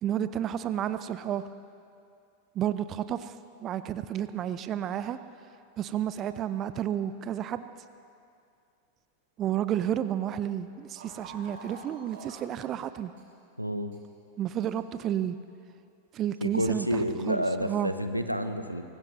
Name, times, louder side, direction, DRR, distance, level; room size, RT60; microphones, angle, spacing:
voice 1, 0.0-1.5 2.6-3.3 3.6-5.2 5.8-7.6 9.4-13.1 14.4-15.4 16.1-17.9, right 10 dB, 30° right, 12 dB, 0.5 m, -31 dB
sound 1, 11.0-12.5 13.2-13.3 13.9-14.0 14.7-14.8, right 4 dB, 55° right, 4.4 m, -46 dB
voice 2, 13.6-13.9 16.4-18.8, equal, 90° right, 9 dB, 0.8 m, -29 dB
24.0 x 18.5 x 3.2 m, 2.4 s
figure-of-eight pair, 90°, 0 cm